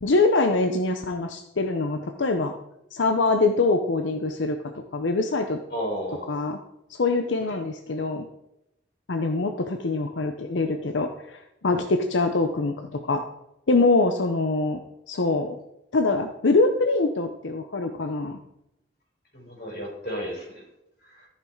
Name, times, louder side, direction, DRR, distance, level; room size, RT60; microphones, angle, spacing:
voice 1, 0.0-2.5 2.9-4.6 4.9-5.6 6.3-6.6 6.9-8.3 9.1-13.2 13.7-14.8 15.1-15.6 15.9-18.4, left 3 dB, 90° left, 6 dB, 0.7 m, -24 dB
voice 2, 5.7-6.4 19.3-20.6 21.1-21.3, equal, 55° left, -2 dB, 4.3 m, -33 dB
14.0 x 5.9 x 4.6 m, 0.85 s
head